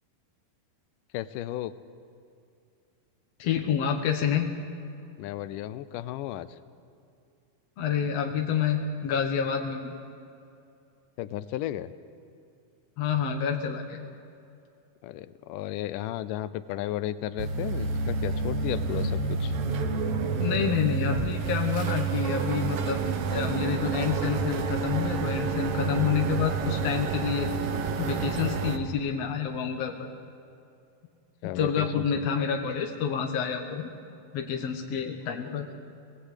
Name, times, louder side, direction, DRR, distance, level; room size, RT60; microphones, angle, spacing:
voice 1, 1.1-1.7 5.2-6.5 11.2-11.9 15.0-19.5 31.4-32.3, left 13 dB, 75° left, 15 dB, 2.1 m, -34 dB
voice 2, 3.4-4.5 7.8-9.9 13.0-14.1 20.4-23.0 23.3-27.5 28.0-30.1 31.5-33.9 34.3-35.7, left 7 dB, 60° left, 3 dB, 2.0 m, -28 dB
sound 1, 17.4-28.8, right 5 dB, 65° right, 1.5 m, -29 dB
22.0 x 18.5 x 8.3 m, 2.6 s
omnidirectional pair, 4.1 m